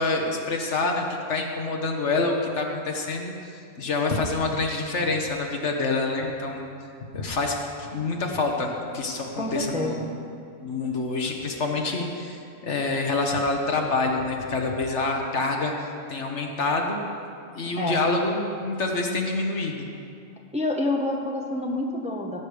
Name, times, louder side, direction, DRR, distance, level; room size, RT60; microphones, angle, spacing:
voice 1, 0.0-6.7 7.1-10.0 10.6-17.0 17.5-19.9, left 3 dB, 60° left, 2 dB, 1.6 m, -27 dB
voice 2, 9.3-10.1 17.8-18.1 20.5-22.4, left 2 dB, 5° right, 1 dB, 0.9 m, -28 dB
17.0 x 8.6 x 5.0 m, 2.4 s
omnidirectional pair, 1.3 m